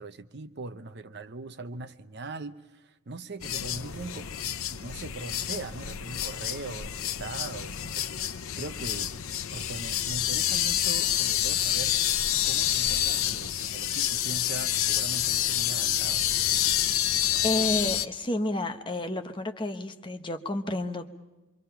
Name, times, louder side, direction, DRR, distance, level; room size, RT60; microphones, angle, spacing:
voice 1, 0.0-9.1 9.5-16.3, right 3 dB, 50° right, 0.8 m, -41 dB
sound 1, 3.4-18.1, left 11 dB, 80° left, 0.7 m, -28 dB
voice 2, 17.4-21.1, left 1 dB, 20° left, 0.9 m, -30 dB
26.0 x 24.0 x 5.8 m
head